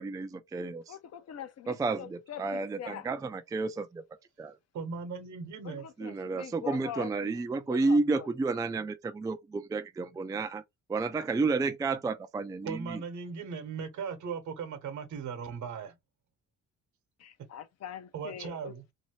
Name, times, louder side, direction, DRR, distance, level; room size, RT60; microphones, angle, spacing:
voice 1, 0.0-1.0 1.7-4.0 4.4-4.6 6.0-10.6 10.9-13.0, right 3 dB, 10° right, 0.3 m, -31 dB
voice 2, 0.9-3.1 5.6-7.4 7.7-8.3 17.2-18.7, left 9 dB, 55° left, 0.6 m, -43 dB
voice 3, 4.7-5.9 12.6-15.9 18.1-18.8, right 6 dB, 70° right, 1.0 m, -38 dB
2.7 x 2.6 x 2.9 m
cardioid pair, 90°, 30 cm